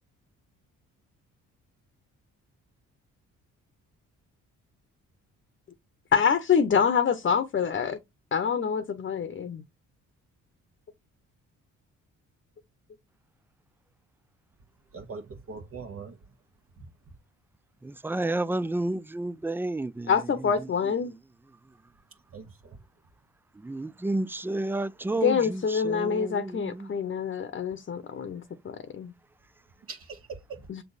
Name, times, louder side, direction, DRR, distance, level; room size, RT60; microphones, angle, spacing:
voice 1, 6.1-8.0 8.3-9.6 20.1-21.1 25.2-29.1 30.7-30.8, left 6 dB, 40° left, 1.0 m, -26 dB
voice 2, 14.9-16.1 22.3-22.8 29.9-30.7, right 4 dB, 45° right, 1.3 m, -41 dB
voice 3, 17.8-20.1 23.6-26.9, right 2 dB, 5° right, 0.4 m, -31 dB
7.0 x 3.4 x 4.0 m
cardioid pair, 90°, 30 cm